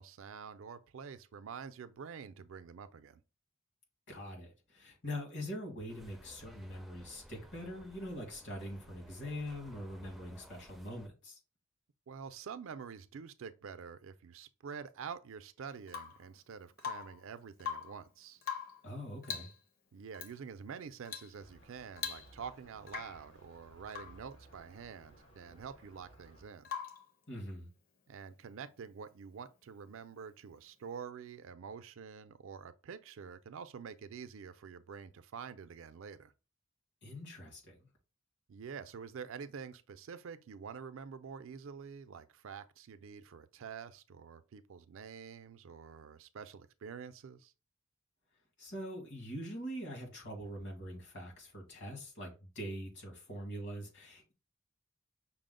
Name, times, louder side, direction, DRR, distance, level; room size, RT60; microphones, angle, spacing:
voice 1, 0.0-3.2 12.1-18.4 19.9-26.7 28.1-36.3 38.5-47.5, right 6 dB, 70° right, 0.4 m, -47 dB
voice 2, 4.1-11.4 18.8-19.5 27.3-27.7 37.0-37.9 48.6-54.3, equal, 60° left, 1.7 m, -43 dB
sound 1, 5.9-11.1, equal, ahead, 0.4 m, -56 dB
Rain / Water tap faucet / Drip, 15.9-16.3 16.8-17.3 17.6-18.0 18.4-18.9 19.2-19.6 20.1-20.3 21.1-21.4 21.6-21.7 22.0-22.5 22.9-23.3 23.9-24.2 26.7-27.1 29.0-29.1, left 7 dB, 45° left, 0.8 m, -42 dB
sound 2, 21.3-26.4, right 1 dB, 85° left, 2.0 m, -60 dB
5.9 x 2.0 x 3.7 m
head